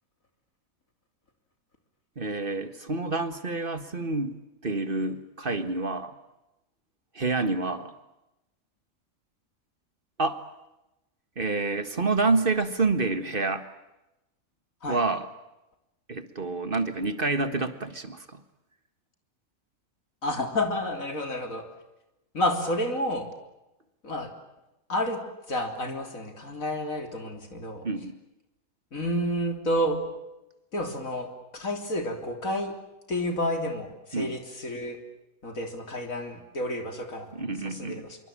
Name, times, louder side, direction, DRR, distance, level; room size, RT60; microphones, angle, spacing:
voice 1, 2.2-4.4 4.6-6.1 7.1-7.9 10.2-10.4 11.4-13.6 14.9-15.3 16.1-18.4 27.8-28.2 34.1-34.3 37.4-37.9, right 3 dB, 40° right, 11 dB, 1.8 m, -28 dB
voice 2, 20.2-21.6 22.3-23.3 24.0-24.3 24.9-25.2 25.5-27.9 28.9-30.0 30.7-32.7 33.1-35.0 35.4-37.4 37.6-38.2, left 1 dB, 80° left, 5 dB, 4.0 m, -30 dB
25.5 x 24.5 x 8.8 m, 0.94 s
omnidirectional pair, 1.4 m